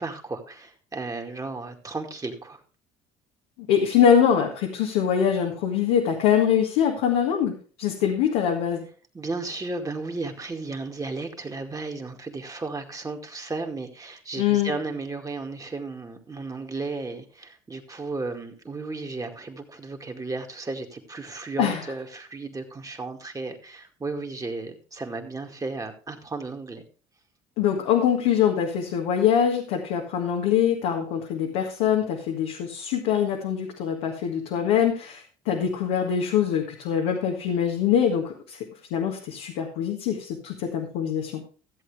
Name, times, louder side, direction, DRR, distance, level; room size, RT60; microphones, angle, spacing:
voice 1, 0.0-2.6 9.1-26.8, right 3 dB, 20° right, 2.1 m, -34 dB
voice 2, 3.7-8.8 14.4-14.7 21.6-21.8 27.6-38.6 38.9-41.4, left 8 dB, 80° left, 1.7 m, -23 dB
14.5 x 7.8 x 3.5 m
supercardioid pair, 75°, 16 cm